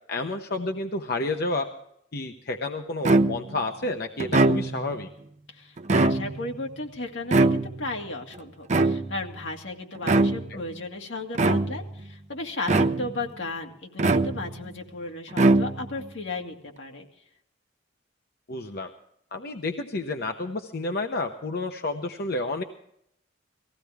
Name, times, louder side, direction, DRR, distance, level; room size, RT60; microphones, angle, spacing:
voice 1, 0.1-1.7 2.1-5.1 10.5-10.6 18.5-18.9 19.3-22.6, left 2 dB, 55° left, 5 dB, 0.9 m, -30 dB
sound 1, 3.0-3.6 4.2-5.0 5.8-6.5 7.3-8.0 8.7-9.3 10.0-10.6 11.3-11.9 12.7-13.3 14.0-14.7 15.3-16.0, right 2 dB, 40° right, 0.6 m, -22 dB
voice 2, 5.5-17.1, left 2 dB, 80° left, 2 dB, 2.1 m, -35 dB
19.0 x 15.5 x 3.5 m, 0.74 s
head